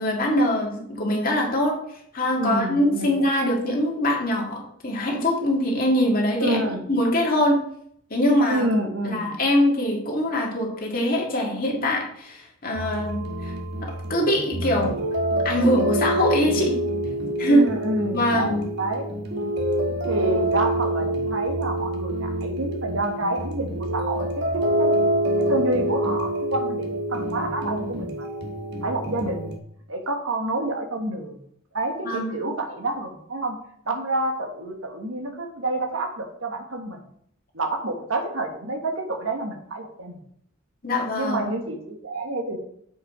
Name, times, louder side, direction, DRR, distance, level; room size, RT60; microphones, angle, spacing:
voice 1, 0.0-1.8 2.1-7.6 8.1-8.6 9.0-13.5 13.8-14.9 15.4-16.7 17.4-17.7 18.1-18.7 32.0-32.5 40.8-41.5, equal, 45° left, -1 dB, 2.2 m, -23 dB
voice 2, 2.4-3.2 6.4-6.8 8.5-9.3 17.5-19.1 20.1-24.9 25.4-28.3 28.8-29.6 29.9-31.4 31.7-33.6 33.8-37.0 37.5-40.2 41.1-42.6, right 1 dB, 70° right, 3 dB, 1.5 m, -28 dB
sound 1, 12.8-29.6, right 1 dB, 55° right, 1.3 m, -26 dB
7.4 x 5.4 x 5.0 m, 0.69 s
head